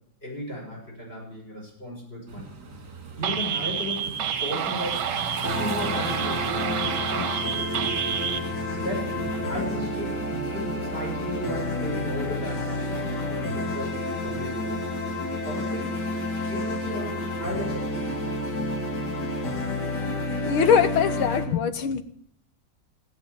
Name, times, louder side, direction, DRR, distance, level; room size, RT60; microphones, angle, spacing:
voice 1, 0.2-2.5 3.2-4.1 4.4-5.1 5.5-7.9 8.7-10.2 10.5-14.8 15.4-16.0 16.5-18.6, equal, 25° left, -1 dB, 6.6 m, -35 dB
sound 1, 2.3-13.0, right 3 dB, 40° right, 2.1 m, -41 dB
sound 2, 3.2-8.4, right 8 dB, 65° right, 1.5 m, -29 dB
sound 3, 5.4-21.4, left 1 dB, 55° left, 2.8 m, -30 dB
voice 2, 20.3-22.0, left 7 dB, 90° left, 11 dB, 1.9 m, -22 dB
16.5 x 8.8 x 8.5 m, 0.68 s
omnidirectional pair, 2.2 m